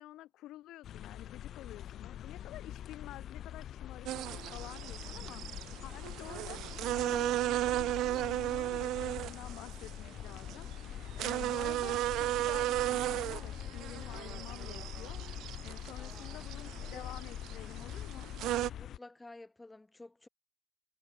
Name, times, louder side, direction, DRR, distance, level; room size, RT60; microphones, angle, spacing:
voice 1, 0.0-6.6 6.9-15.2 15.6-18.3, left 15 dB, 90° left, 6.3 m, -50 dB
sound 1, 0.8-19.0, left 10 dB, 70° left, 0.7 m, -44 dB
sound 2, 4.1-18.7, right 15 dB, 90° right, 0.4 m, -35 dB
voice 2, 16.0-16.5 16.9-17.1 18.7-20.3, left 2 dB, 15° left, 5.9 m, -52 dB
cardioid pair, 90°, 0 cm